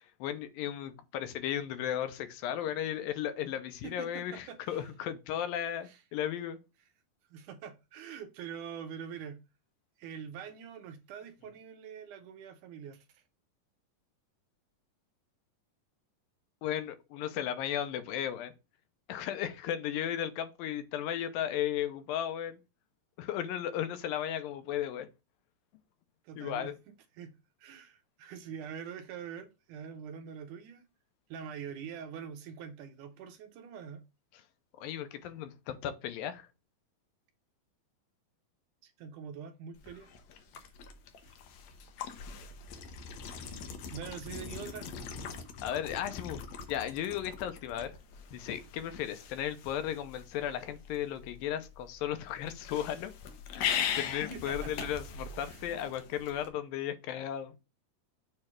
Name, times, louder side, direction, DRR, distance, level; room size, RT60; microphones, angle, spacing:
voice 1, 0.2-6.6 16.6-18.5 19.1-22.6 23.2-25.1 26.4-26.7 34.8-36.5 45.6-46.4 46.7-47.9 48.3-53.1 53.5-57.6, left 10 dB, 90° left, 2.5 m, -35 dB
voice 2, 3.8-4.9 5.8-6.0 7.3-9.4 10.0-13.2 26.2-26.8 27.1-30.9 31.3-34.0 38.8-40.1 41.2-41.4 43.9-44.9 54.3-54.9 55.4-55.7, right 7 dB, 75° right, 2.0 m, -44 dB
sound 1, 39.7-56.5, left 7 dB, 70° left, 1.7 m, -41 dB
6.8 x 3.2 x 5.9 m
omnidirectional pair, 4.0 m